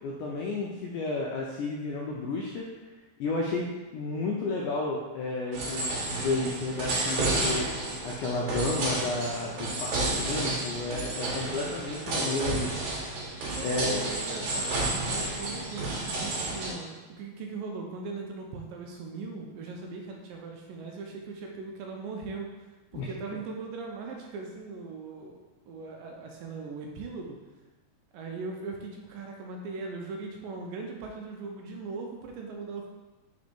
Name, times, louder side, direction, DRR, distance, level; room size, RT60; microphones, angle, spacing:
voice 1, 0.0-2.7 3.2-3.7 3.9-12.8 13.6-14.1 22.9-23.1, left 2 dB, 85° left, -3 dB, 1.8 m, -32 dB
sound 1, 5.5-16.7, right 2 dB, 65° right, 2.3 m, -31 dB
voice 2, 13.5-27.4 28.1-32.9, right 4 dB, 80° right, 1 dB, 2.1 m, -39 dB
5.2 x 4.0 x 5.1 m, 1.2 s
omnidirectional pair, 4.2 m